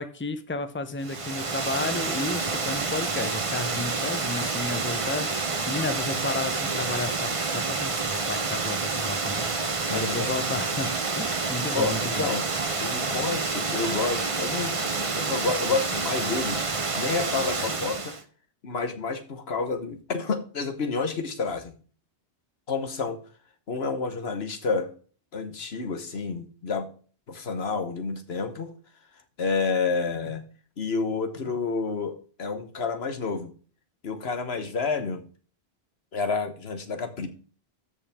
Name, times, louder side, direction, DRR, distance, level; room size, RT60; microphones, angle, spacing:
voice 1, 0.0-12.3, left 3 dB, 15° left, 10 dB, 0.8 m, -33 dB
Water, 1.0-18.2, right 4 dB, 35° right, 0.9 m, -28 dB
voice 2, 9.9-10.3 11.7-12.4 12.8-16.7 16.9-18.1 18.6-21.7 22.7-23.2 23.7-24.9 25.3-26.9 27.3-28.7 29.4-30.4 30.8-33.5 34.0-35.2 36.1-37.3, left 4 dB, 80° left, 8 dB, 1.5 m, -29 dB
13.5 x 5.4 x 3.6 m, 0.40 s
omnidirectional pair, 1.0 m